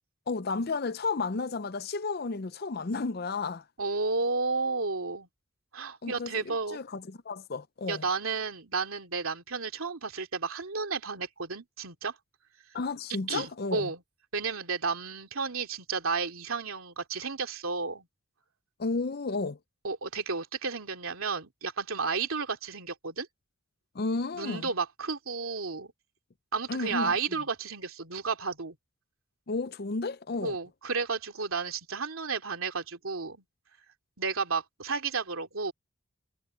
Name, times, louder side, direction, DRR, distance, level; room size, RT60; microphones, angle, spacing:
voice 1, 0.3-3.6 6.0-8.0 12.7-13.9 18.8-19.6 23.9-24.7 26.7-27.2 29.5-30.6, left 3 dB, 45° left, 0.5 m, -32 dB
voice 2, 3.8-5.3 5.7-6.8 7.9-12.2 13.3-14.0 14.3-18.1 19.8-23.3 24.3-25.9 26.5-28.8 30.4-33.4 34.2-35.7, right 4 dB, 80° right, 2.7 m, -32 dB
head